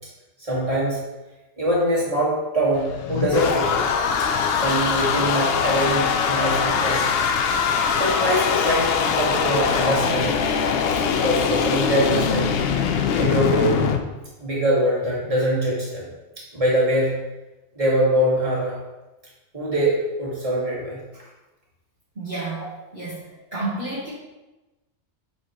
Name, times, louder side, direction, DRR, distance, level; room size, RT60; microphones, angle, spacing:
voice 1, 0.4-1.0 1.6-3.9 4.5-7.1 8.0-10.6 11.1-12.6 13.1-13.9 14.4-16.1 16.5-17.2 17.8-18.8 19.5-21.0, right 1 dB, 30° right, -6 dB, 1.8 m, -23 dB
sound 1, 2.7-14.0, left 6 dB, 65° left, 0.7 m, -22 dB
voice 2, 22.1-22.6 22.9-23.2 23.5-24.1, right 2 dB, 50° right, -9 dB, 1.4 m, -29 dB
7.9 x 4.1 x 2.9 m, 1.1 s
omnidirectional pair, 1.2 m